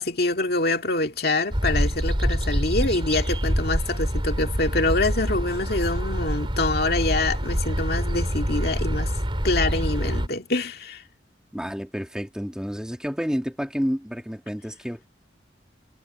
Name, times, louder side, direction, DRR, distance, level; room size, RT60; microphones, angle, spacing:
voice 1, 0.0-9.1 9.4-11.0, left 2 dB, 60° left, 2.2 m, -25 dB
sound 1, 1.5-10.3, equal, 30° right, 4.5 m, -26 dB
voice 2, 11.5-15.1, equal, 5° right, 2.7 m, -30 dB
head